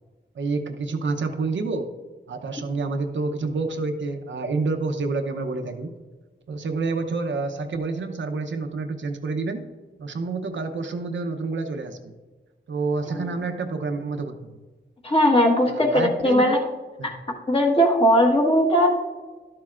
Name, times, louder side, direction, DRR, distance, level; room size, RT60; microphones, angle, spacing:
voice 1, 0.4-1.9 2.3-5.9 6.5-9.7 10.0-12.2 12.7-14.3 15.7-16.5 17.0-17.1, right 3 dB, 75° right, 5 dB, 0.8 m, -28 dB
voice 2, 15.0-16.6 17.0-17.1 17.5-18.9, equal, 30° left, -1 dB, 1.4 m, -19 dB
12.0 x 7.5 x 2.5 m, 1.3 s
wide cardioid pair, 130°, 19 cm